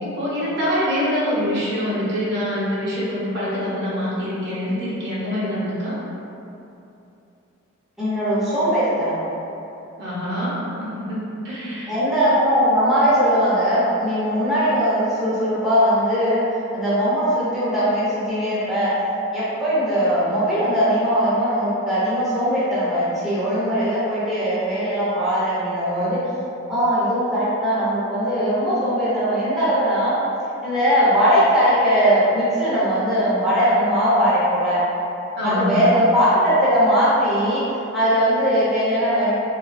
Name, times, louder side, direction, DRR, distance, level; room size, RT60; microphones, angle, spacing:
voice 1, 0.0-6.0 10.0-11.9 35.4-35.8, equal, 55° right, -8 dB, 0.8 m, -25 dB
voice 2, 8.0-9.2 11.9-16.4 16.7-18.9 19.3-26.2 26.7-30.2 30.6-34.8 35.4-37.6 37.9-39.3, equal, ahead, -12 dB, 0.7 m, -20 dB
3.2 x 2.9 x 2.6 m, 2.9 s
head